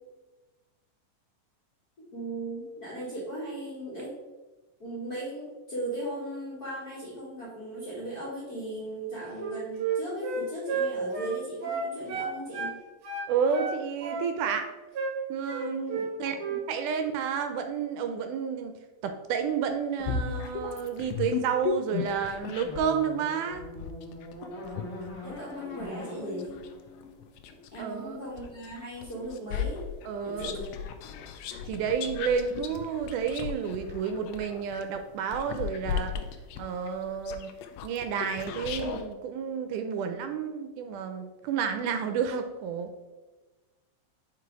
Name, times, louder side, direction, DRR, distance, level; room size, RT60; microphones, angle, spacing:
voice 1, 2.1-4.2 4.8-12.8 15.8-16.6 25.2-26.5 27.7-29.9 30.2-30.7 31.0-31.2, right 1 dB, 45° left, -9 dB, 1.3 m, -37 dB
Wind instrument woodwind instrument, 9.3-12.8 13.0-14.7 14.9-15.2 15.5-16.1 16.4-16.6, right 5 dB, 60° right, 1.5 m, -32 dB
voice 2, 13.3-14.6 15.3-16.4 16.7-18.7 19.0-23.7 27.8-28.2 30.1-30.5 31.7-36.2 36.6-37.5 37.8-42.9, right 6 dB, 80° right, 7 dB, 2.0 m, -30 dB
sound 1, 20.0-23.0 23.5-27.9 28.4-39.0, left 8 dB, 90° left, 1.5 m, -36 dB
sound 2, 22.6-27.7, left 2 dB, 65° left, 0.8 m, -42 dB
5.0 x 4.7 x 4.6 m, 1.2 s
omnidirectional pair, 3.7 m